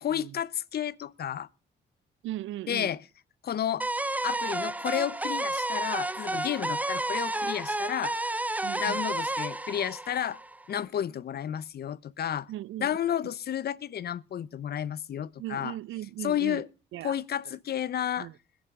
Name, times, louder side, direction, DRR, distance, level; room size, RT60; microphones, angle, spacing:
voice 1, 0.0-1.5 2.7-3.0 3.4-3.9 4.2-8.2 8.8-10.4 10.7-12.5 12.8-15.7 16.2-16.7 17.0-18.3, left 10 dB, 55° left, 0.7 m, -31 dB
voice 2, 2.2-2.9 8.6-9.0 12.5-13.0 15.4-16.6 16.9-17.2 18.2-18.4, right 14 dB, 80° right, 0.6 m, -37 dB
sound 1, 3.8-10.8, right 2 dB, 10° right, 0.6 m, -31 dB
21.0 x 10.5 x 3.7 m
cardioid pair, 90°, 20 cm